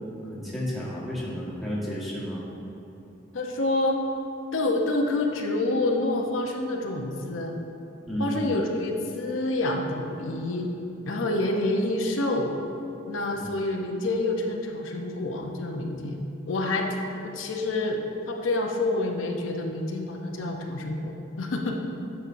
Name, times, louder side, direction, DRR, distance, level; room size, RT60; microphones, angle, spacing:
voice 1, 0.2-2.4 8.1-8.5 13.3-13.5, equal, ahead, -7 dB, 1.3 m, -32 dB
voice 2, 3.3-4.0 4.5-7.6 8.2-10.7 11.1-12.5 13.1-17.0 17.2-18.0 18.3-21.8, left 2 dB, 90° left, 1 dB, 0.7 m, -27 dB
9.4 x 6.1 x 2.6 m, 2.9 s
head